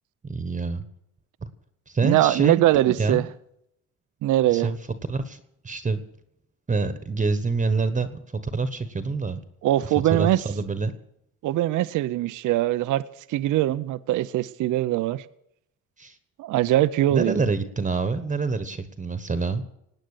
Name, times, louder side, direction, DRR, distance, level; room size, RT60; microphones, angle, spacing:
voice 1, 0.2-0.8 1.4-1.5 1.9-3.3 4.5-4.8 5.1-6.0 6.7-9.4 9.8-10.9 16.0-16.2 17.1-19.6, right 4 dB, 25° right, 11 dB, 1.3 m, -27 dB
voice 2, 2.0-3.2 4.2-4.7 9.6-10.4 11.4-13.0 13.3-15.2 16.4-17.4, right 14 dB, 80° right, 16 dB, 0.6 m, -22 dB
18.5 x 9.2 x 6.7 m, 0.77 s
cardioid pair, 90°, 30 cm